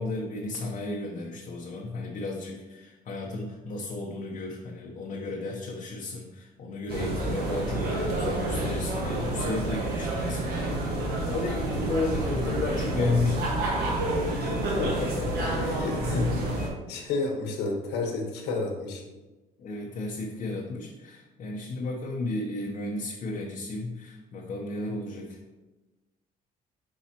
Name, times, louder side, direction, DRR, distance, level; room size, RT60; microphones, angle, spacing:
voice 1, 0.0-13.5 16.0-16.6 19.6-25.4, left 2 dB, 45° left, -1 dB, 0.9 m, -33 dB
sound 1, 6.9-16.7, right 1 dB, 65° right, 1.5 m, -29 dB
voice 2, 14.8-16.3 16.9-19.0, left 3 dB, 90° left, 1 dB, 1.3 m, -31 dB
7.2 x 4.8 x 2.9 m, 1.1 s
cardioid pair, 110°, 17 cm